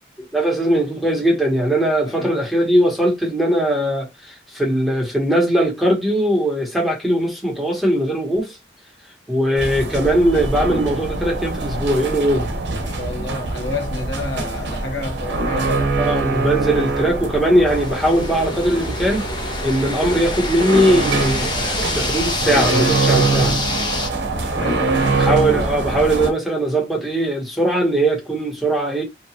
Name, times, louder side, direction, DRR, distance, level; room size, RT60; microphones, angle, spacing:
voice 1, 0.2-8.6 9.3-12.5 16.0-19.3 19.6-23.5 25.2-29.0, right 1 dB, ahead, 0.9 m, -20 dB
voice 2, 2.0-2.4 12.7-16.0 24.6-25.2, left 2 dB, 75° left, 0.9 m, -30 dB
sound 1, 9.6-26.3, right 3 dB, 65° right, 0.7 m, -23 dB
sound 2, 17.6-24.1, left 3 dB, 25° left, 0.6 m, -27 dB
2.8 x 2.2 x 2.7 m
head